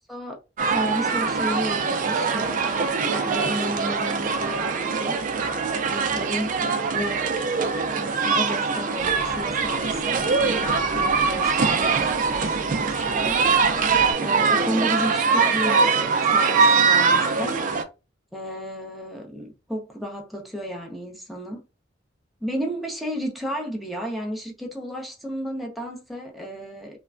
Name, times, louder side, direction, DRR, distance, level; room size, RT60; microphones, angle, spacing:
voice 1, 0.6-5.6 5.9-7.3 8.0-17.6 18.3-21.6 22.4-27.0, equal, ahead, 0.7 m, -33 dB
sound 1, 0.6-17.8, right 5 dB, 45° right, 0.4 m, -22 dB
Drill, 9.0-14.1, equal, 40° left, 0.9 m, -39 dB
3.1 x 2.2 x 2.4 m
head